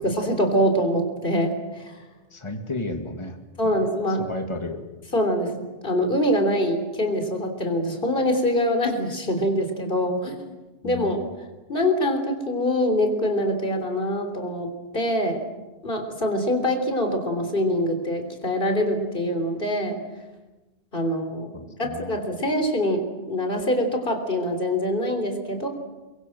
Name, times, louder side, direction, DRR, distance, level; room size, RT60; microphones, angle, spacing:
voice 1, 0.0-2.0 3.6-4.2 5.1-10.4 10.8-11.2 11.7-15.4 15.8-20.0 20.9-21.5 21.8-23.0 23.3-25.7, equal, 50° left, 5 dB, 3.7 m, -24 dB
voice 2, 2.3-3.4 3.6-3.8 4.2-4.8 10.8-11.2 21.5-22.2, left 2 dB, 25° left, 4 dB, 2.2 m, -33 dB
24.0 x 22.5 x 7.8 m, 1.2 s
omnidirectional pair, 1.2 m